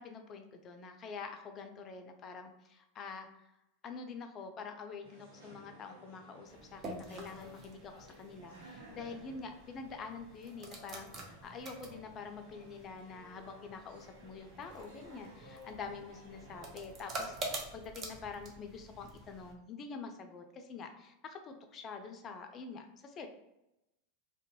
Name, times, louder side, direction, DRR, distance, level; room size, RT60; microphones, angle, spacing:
voice 1, 0.0-3.3 3.8-23.3, left 5 dB, 35° left, 5 dB, 0.4 m, -46 dB
sound 1, 5.0-17.7, right 1 dB, 75° right, 0.9 m, -56 dB
sound 2, 6.5-19.5, right 2 dB, 35° right, 0.6 m, -47 dB
2.6 x 2.1 x 2.9 m, 0.89 s
hypercardioid pair, 90°, 0 cm